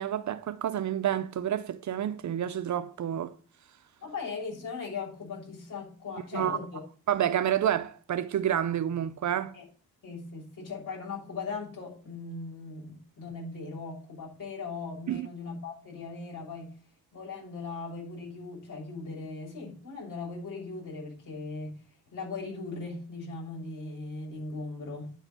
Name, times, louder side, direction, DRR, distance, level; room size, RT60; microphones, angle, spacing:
voice 1, 0.0-3.3 6.3-6.6 7.1-9.6 15.1-15.3, right 10 dB, 50° right, 0.7 m, -29 dB
voice 2, 4.0-6.8 9.5-9.6 10.0-16.8 17.1-21.7 22.1-25.1, left 4 dB, 55° left, 7.0 m, -39 dB
9.9 x 4.8 x 7.7 m
cardioid pair, 125°, 37 cm